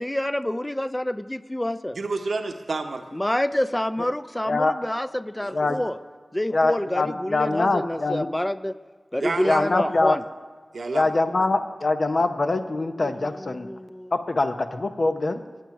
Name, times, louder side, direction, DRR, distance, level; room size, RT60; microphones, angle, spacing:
voice 1, 0.0-2.0 3.1-6.0 6.3-8.7 9.1-10.2 13.0-14.1, left 1 dB, 15° left, 13 dB, 0.4 m, -28 dB
voice 2, 1.9-3.1 5.4-5.7 9.2-9.7 10.7-11.1 11.4-11.5, right 3 dB, 75° right, 6 dB, 0.8 m, -29 dB
voice 3, 6.5-8.3 9.4-10.2 10.9-13.7 14.1-15.4, left 2 dB, 60° left, 8 dB, 0.7 m, -23 dB
9.0 x 8.7 x 5.8 m, 1.5 s
cardioid pair, 40°, 0 cm